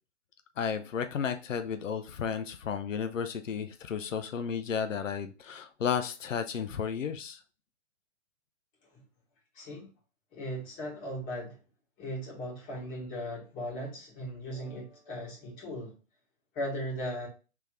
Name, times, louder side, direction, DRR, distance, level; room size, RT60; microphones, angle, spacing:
voice 1, 0.6-7.4, left 7 dB, 90° left, 0.6 m, -33 dB
voice 2, 9.5-9.9 10.3-11.6 12.0-16.0 16.5-17.3, equal, 20° left, 2.0 m, -37 dB
3.4 x 3.4 x 3.2 m
hypercardioid pair, 140°, 37 cm